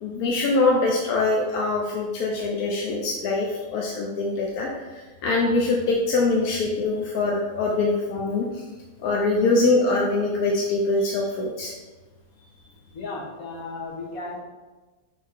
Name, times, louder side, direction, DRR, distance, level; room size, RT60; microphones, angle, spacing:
voice 1, 0.0-8.6 9.0-11.7, left 3 dB, 90° left, -1 dB, 1.4 m, -23 dB
voice 2, 12.9-14.4, left 3 dB, 75° left, -2 dB, 1.9 m, -34 dB
10.5 x 4.5 x 3.7 m, 1.3 s
omnidirectional pair, 1.5 m